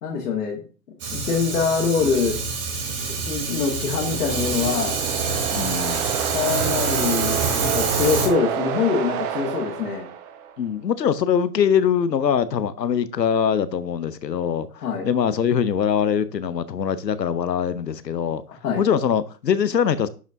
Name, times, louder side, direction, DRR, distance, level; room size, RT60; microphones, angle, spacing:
voice 1, 0.0-0.6 1.1-2.4 3.0-5.0 6.3-10.1 14.8-15.1 18.6-18.8, left 5 dB, 70° left, 2.1 m, -24 dB
Fire, 1.0-8.3, right 4 dB, 60° right, 2.9 m, -26 dB
sound 1, 3.5-10.6, right 9 dB, 40° right, 1.0 m, -29 dB
voice 2, 5.5-6.0 10.6-14.7 15.0-18.4 18.8-20.1, left 8 dB, 85° left, 0.8 m, -22 dB
11.0 x 5.0 x 2.7 m
figure-of-eight pair, 105°, 49 cm